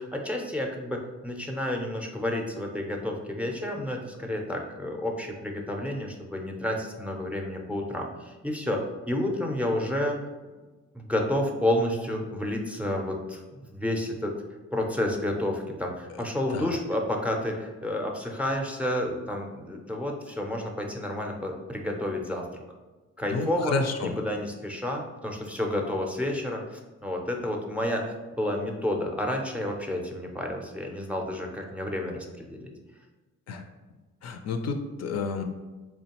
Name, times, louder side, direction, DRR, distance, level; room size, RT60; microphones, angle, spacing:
voice 1, 0.0-10.2 11.0-13.4 13.7-14.4 14.7-22.5 23.2-32.7, left 1 dB, 5° right, 2 dB, 0.5 m, -30 dB
voice 2, 23.2-24.1 33.5-33.6 34.2-35.4, left 4 dB, 60° left, 5 dB, 0.5 m, -30 dB
3.7 x 3.1 x 2.9 m, 1.2 s
cardioid pair, 90°, 30 cm